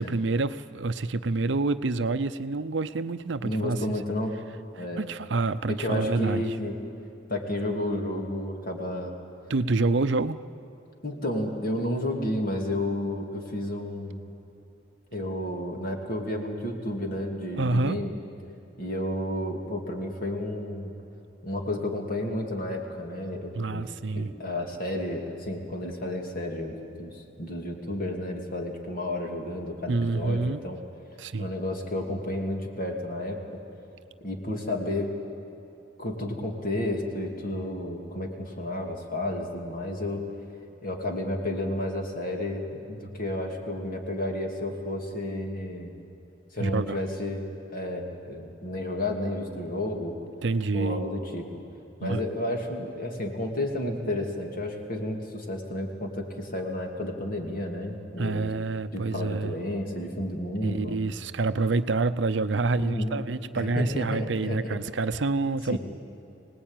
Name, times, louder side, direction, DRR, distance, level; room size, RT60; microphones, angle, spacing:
voice 1, 0.0-4.0 4.8-6.6 9.5-10.4 17.6-18.0 23.6-24.3 29.9-30.6 31.2-31.5 46.6-47.0 50.4-51.0 52.0-52.2 58.2-59.5 60.6-65.8, right 3 dB, 65° right, 13 dB, 0.6 m, -27 dB
voice 2, 3.4-4.4 4.8-5.1 5.7-6.7 7.3-9.1 11.0-14.3 15.1-18.1 18.8-20.9 21.4-23.8 24.1-30.8 31.4-33.4 34.2-35.1 36.0-40.2 40.8-46.0 46.5-50.2 50.7-51.4 52.0-58.5 58.9-61.0 62.6-63.2 63.6-64.8 65.7-65.8, left 1 dB, 50° left, 2 dB, 2.7 m, -31 dB
24.5 x 19.0 x 9.1 m, 2.9 s
head